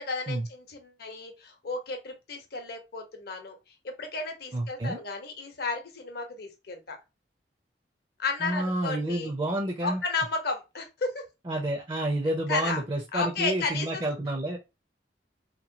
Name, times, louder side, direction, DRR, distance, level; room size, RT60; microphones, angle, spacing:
voice 1, 0.0-3.6 3.8-7.0 8.2-9.3 9.8-11.2 12.5-12.8 13.1-14.0, left 4 dB, 60° left, 0.8 m, -33 dB
voice 2, 4.5-5.0 8.4-10.0 11.5-14.6, right 1 dB, 25° right, 0.5 m, -29 dB
2.9 x 2.2 x 2.6 m
head